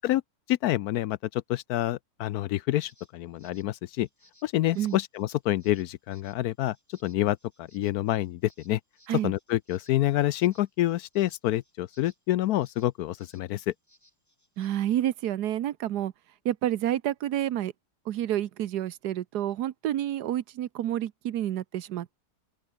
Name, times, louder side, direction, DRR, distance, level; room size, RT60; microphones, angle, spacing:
voice 1, 0.5-4.1 4.4-6.8 7.0-8.8 9.2-13.7, left 14 dB, 75° left, 1.0 m, -27 dB
sound 1, 2.8-14.8, left 1 dB, 10° left, 3.7 m, -64 dB
voice 2, 14.6-16.1 16.4-17.7 18.1-22.2, right 12 dB, 75° right, 1.4 m, -29 dB
open air
omnidirectional pair, 1.8 m